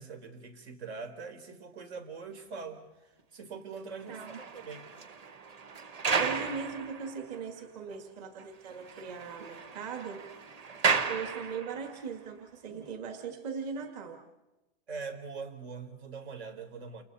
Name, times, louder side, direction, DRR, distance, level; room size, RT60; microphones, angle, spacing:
voice 1, 0.0-4.9 14.9-17.0, right 5 dB, 80° right, 7 dB, 4.5 m, -43 dB
sound 1, 3.9-7.6 7.9-8.0 8.4-8.5 8.7-12.0 12.7-12.9, right 5 dB, 25° right, 1.0 m, -34 dB
voice 2, 4.1-4.4 6.1-10.3 10.8-14.2, right 6 dB, 40° right, 4 dB, 2.2 m, -39 dB
29.5 x 29.0 x 4.3 m, 1.0 s
supercardioid pair, 180°, 32 cm